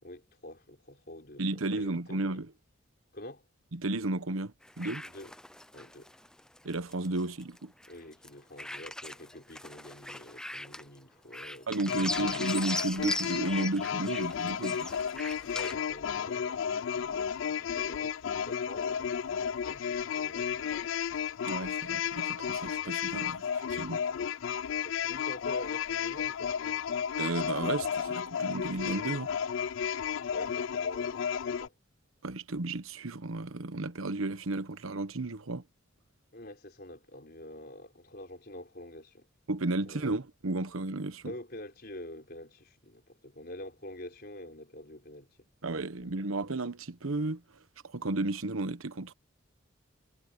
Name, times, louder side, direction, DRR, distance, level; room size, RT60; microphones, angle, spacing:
voice 1, 0.0-2.4 3.1-3.4 5.0-5.3 5.7-6.1 7.9-12.3 15.5-20.9 24.0-24.2 24.8-27.0 30.0-31.7 36.3-39.3 39.8-40.1 41.2-45.4 46.0-46.1, left 1 dB, 50° left, 4.7 m, -47 dB
voice 2, 1.4-2.5 3.7-5.0 6.6-7.7 11.7-14.9 21.5-24.0 27.2-29.3 32.2-35.6 39.5-41.3 45.6-47.4 47.8-49.1, right 2 dB, 90° right, 1.1 m, -33 dB
sound 1, 4.6-8.3 8.6-11.0 11.3-15.7, left 1 dB, 5° left, 0.5 m, -40 dB
sound 2, 11.9-31.7, left 7 dB, 70° left, 0.4 m, -33 dB
head